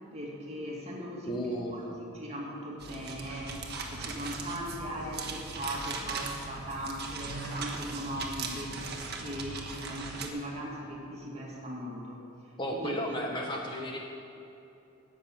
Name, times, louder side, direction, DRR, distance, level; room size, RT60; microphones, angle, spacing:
voice 1, 0.1-12.2 12.7-12.9, equal, 30° right, -2 dB, 2.1 m, -39 dB
voice 2, 1.3-1.8 12.6-14.0, equal, 20° left, 0 dB, 0.8 m, -33 dB
sound 1, 2.8-10.3, right 4 dB, 45° right, 1.2 m, -39 dB
14.0 x 6.4 x 8.8 m, 2.8 s
head